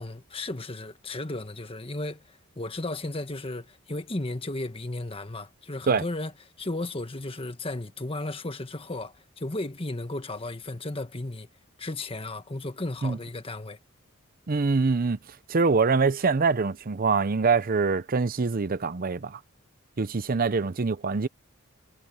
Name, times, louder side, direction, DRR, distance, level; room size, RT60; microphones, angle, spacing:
voice 1, 0.0-6.3 6.6-11.5 11.8-13.8, left 2 dB, 25° left, 1.4 m, -34 dB
voice 2, 14.5-15.2 15.5-19.4 20.0-21.3, right 4 dB, 45° right, 0.6 m, -24 dB
head